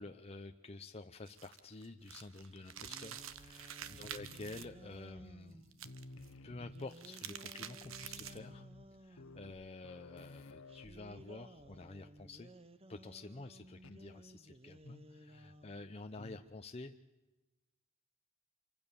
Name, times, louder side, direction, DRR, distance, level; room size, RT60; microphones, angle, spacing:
voice 1, 0.0-5.9 6.4-12.5 12.9-16.9, left 2 dB, 30° left, 5 dB, 0.8 m, -50 dB
sound 1, 1.2-4.6 5.7-6.3 6.8-8.5, right 9 dB, 70° right, 1.3 m, -48 dB
sound 2, 2.5-5.7 6.6-9.5 10.7-15.9, right 1 dB, 30° right, 1.2 m, -57 dB
sound 3, 3.3-5.6 5.8-7.2 7.5-7.6 7.8-11.9 12.2-12.5 13.8-14.1 14.8-15.2 16.2-16.6, left 2 dB, 75° left, 1.4 m, -55 dB
27.0 x 25.0 x 7.1 m, 1.1 s
head